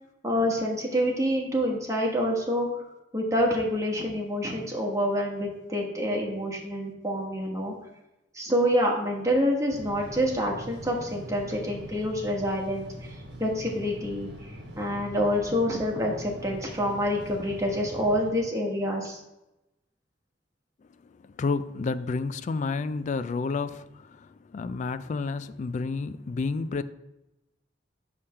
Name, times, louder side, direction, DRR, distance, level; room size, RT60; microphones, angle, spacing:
voice 1, 0.2-2.7 3.1-7.7 8.3-13.1 13.4-14.5 14.8-19.2, equal, 15° right, 1.3 m, -27 dB
sound 1, 9.7-18.3, equal, 65° right, 1.1 m, -42 dB
voice 2, 21.0-26.8, left 4 dB, 40° left, 0.3 m, -30 dB
7.1 x 3.3 x 5.7 m
head